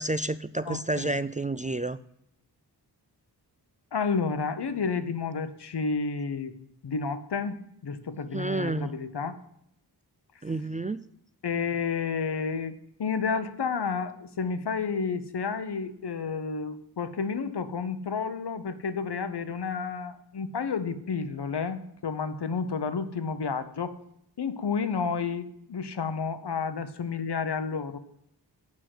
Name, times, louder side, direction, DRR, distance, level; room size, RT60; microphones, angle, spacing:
voice 1, 0.0-2.0 8.3-8.9 10.4-11.0, right 2 dB, 20° right, 13 dB, 0.3 m, -30 dB
voice 2, 0.6-1.2 3.9-6.5 6.8-9.4 11.4-23.9 24.4-28.0, left 5 dB, 70° left, 11 dB, 1.0 m, -31 dB
9.0 x 6.2 x 7.7 m, 0.73 s
wide cardioid pair, 95°, 41 cm